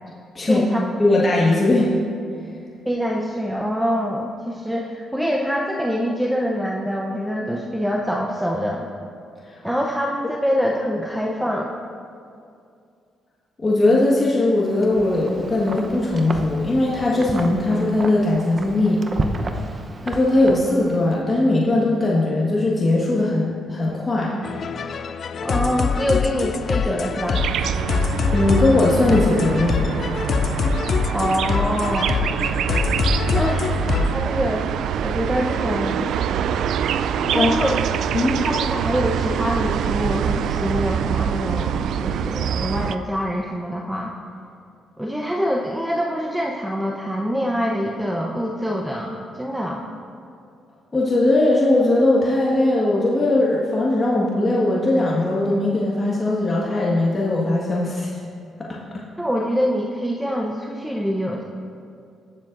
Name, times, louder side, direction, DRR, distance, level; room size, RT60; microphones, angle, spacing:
voice 1, 0.5-0.8 2.9-8.9 9.6-11.7 25.4-27.4 31.1-32.2 33.3-33.7 34.1-34.7 35.0-36.1 37.3-37.8 38.4-44.1 45.0-49.9 59.2-61.4, equal, 5° right, -1 dB, 0.7 m, -25 dB
voice 2, 1.0-1.9 9.5-9.6 13.6-19.0 20.0-24.4 28.3-29.9 37.2-37.5 38.1-38.4 50.9-58.1 58.7-59.0, left 2 dB, 30° left, -5 dB, 1.5 m, -19 dB
Wind, 14.6-21.1, right 2 dB, 35° right, 0.8 m, -32 dB
sound 1, 24.4-34.2, left 6 dB, 50° left, 0.4 m, -24 dB
sound 2, 27.3-43.0, right 8 dB, 75° right, 0.3 m, -24 dB
19.5 x 7.3 x 2.6 m, 2.4 s
cardioid pair, 90°, 0 cm